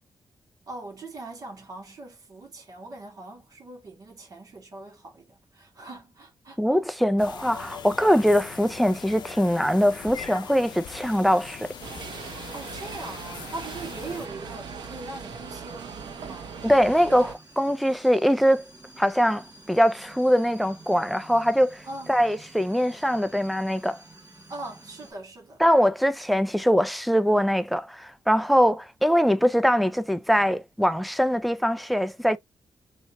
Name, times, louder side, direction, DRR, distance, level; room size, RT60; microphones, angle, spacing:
voice 1, 0.7-6.6 12.5-16.6 21.9-22.1 24.5-25.6, right 2 dB, 50° right, 1.9 m, -41 dB
voice 2, 6.6-11.7 16.6-18.6 19.0-21.8 22.1-24.0 25.6-32.4, equal, ahead, 0.4 m, -22 dB
sound 1, 7.2-14.3, left 8 dB, 70° left, 0.6 m, -42 dB
sound 2, 9.7-25.1, right 2 dB, 30° right, 2.5 m, -51 dB
sound 3, 11.8-17.3, right 6 dB, 80° right, 1.0 m, -39 dB
4.2 x 2.9 x 3.0 m
wide cardioid pair, 165°, 8 cm